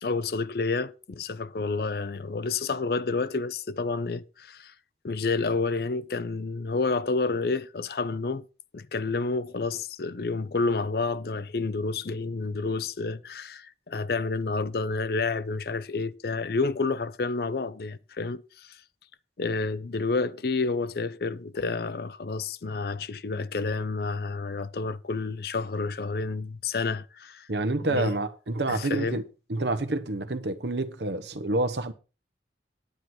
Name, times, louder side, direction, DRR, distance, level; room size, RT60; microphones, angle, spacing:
voice 1, 0.0-4.7 5.0-8.5 8.7-18.8 19.4-27.5 27.9-28.1 28.7-29.2, left 3 dB, 60° left, 0.5 m, -29 dB
voice 2, 27.5-29.2 29.5-31.9, right 2 dB, 75° right, 1.0 m, -28 dB
9.7 x 9.5 x 4.4 m
head